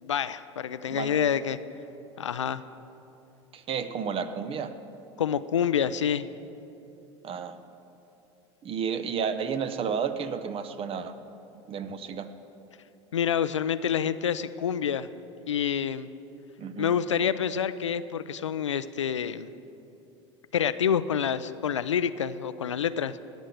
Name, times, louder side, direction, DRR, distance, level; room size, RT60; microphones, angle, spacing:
voice 1, 0.0-1.6 2.2-2.6 5.2-6.3 13.1-15.1 15.5-16.1 16.8-19.5 20.5-23.2, left 8 dB, 85° left, 14 dB, 0.5 m, -27 dB
voice 2, 3.5-4.7 7.2-7.6 8.6-11.1 11.7-12.3 16.6-16.9, right 6 dB, 40° right, 10 dB, 0.9 m, -31 dB
17.0 x 6.3 x 8.6 m, 2.8 s
hypercardioid pair, 75°, 15 cm